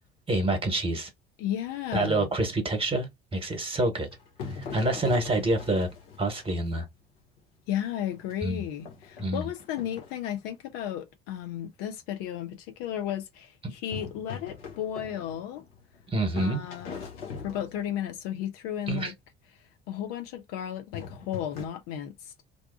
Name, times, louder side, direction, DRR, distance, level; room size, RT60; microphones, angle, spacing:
voice 1, 0.3-1.1 1.9-4.1 4.7-5.9 6.2-6.8 8.4-8.6 9.2-9.5 16.1-16.6 18.9-19.1, right 2 dB, 20° right, 1.2 m, -27 dB
voice 2, 1.4-2.3 4.7-4.8 7.7-15.6 16.4-17.0 17.4-19.1 19.9-22.4, left 10 dB, 55° left, 0.5 m, -34 dB
sound 1, 4.0-6.8 7.4-7.5 8.0-10.2 13.9-16.0 16.4-18.1 20.9-21.7, left 6 dB, 70° left, 0.9 m, -42 dB
2.6 x 2.2 x 2.5 m
figure-of-eight pair, 55°, 30 cm